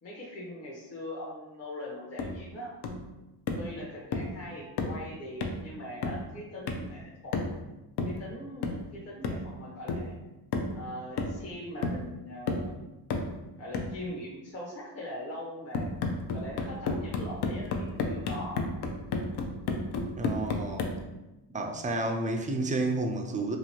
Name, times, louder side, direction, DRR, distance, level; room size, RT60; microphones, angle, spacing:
voice 1, 0.0-2.7 3.6-7.4 8.0-10.1 10.7-12.8 13.6-15.9 16.3-18.6, left 1 dB, 30° left, -5 dB, 0.9 m, -41 dB
sound 1, 2.2-2.4 2.8-3.1 3.5-3.7 4.1-4.4 4.8-5.0 5.4-5.7 6.0-6.3 6.7-6.9 7.3-7.6 8.0-8.2 8.6-8.9 9.2-9.5 9.9-10.1 10.5-10.8 11.2-11.5 11.8-12.1 12.5-12.7 13.1-13.4 13.7-14.0 15.7-21.0, left 3 dB, 55° left, 0.6 m, -32 dB
voice 2, 20.2-20.9 21.5-23.6, right 2 dB, 15° right, 3 dB, 0.4 m, -30 dB
2.9 x 2.5 x 2.8 m, 1.0 s
supercardioid pair, 65°, 48 cm